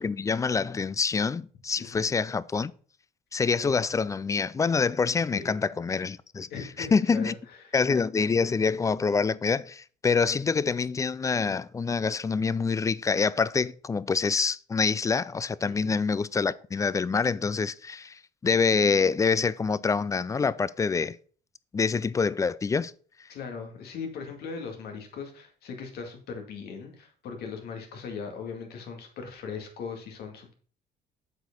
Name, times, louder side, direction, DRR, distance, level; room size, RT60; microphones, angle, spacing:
voice 1, 0.0-2.7 3.3-6.5 6.8-7.4 7.7-21.2 21.7-22.9, left 5 dB, 20° left, 0.3 m, -26 dB
voice 2, 6.5-7.7 15.6-15.9 23.3-30.5, left 5 dB, 70° left, 2.2 m, -39 dB
7.8 x 4.8 x 5.3 m
cardioid pair, 110°, 17 cm